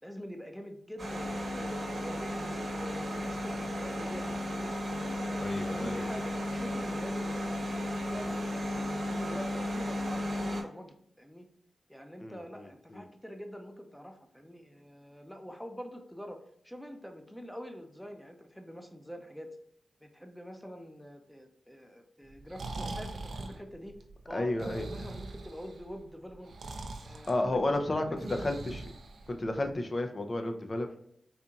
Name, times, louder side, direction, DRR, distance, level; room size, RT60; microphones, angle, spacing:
voice 1, 0.0-4.7 5.3-11.5 11.9-19.6 20.0-24.0 24.3-26.5 27.0-28.6, equal, 5° left, 5 dB, 0.6 m, -45 dB
sound 1, 1.0-10.6, left 1 dB, 55° right, 1.0 m, -34 dB
voice 2, 5.4-6.0 12.2-12.4 12.9-13.0 24.3-24.8 27.3-28.0 28.3-28.8 29.3-31.0, left 2 dB, 40° left, 5 dB, 0.6 m, -31 dB
Breathing, 22.3-29.7, right 2 dB, 75° right, 0.5 m, -42 dB
4.1 x 2.8 x 2.4 m, 0.69 s
cardioid pair, 45°, 0 cm